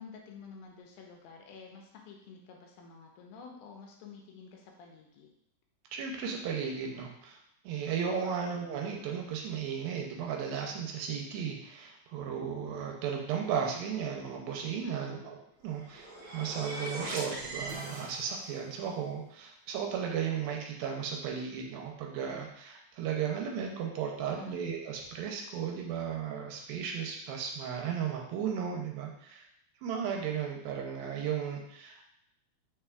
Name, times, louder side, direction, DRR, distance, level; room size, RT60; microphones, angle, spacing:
voice 1, 0.0-5.3 8.2-8.4 14.8-15.3 24.2-24.6, left 5 dB, 85° left, 1 dB, 2.4 m, -50 dB
voice 2, 5.9-15.4 15.6-29.4 29.8-32.1, right 7 dB, 80° right, 1 dB, 2.3 m, -35 dB
sound 1, 15.6-18.6, right 2 dB, 60° right, 1.8 m, -40 dB
6.1 x 3.3 x 2.2 m, 0.74 s
omnidirectional pair, 4.3 m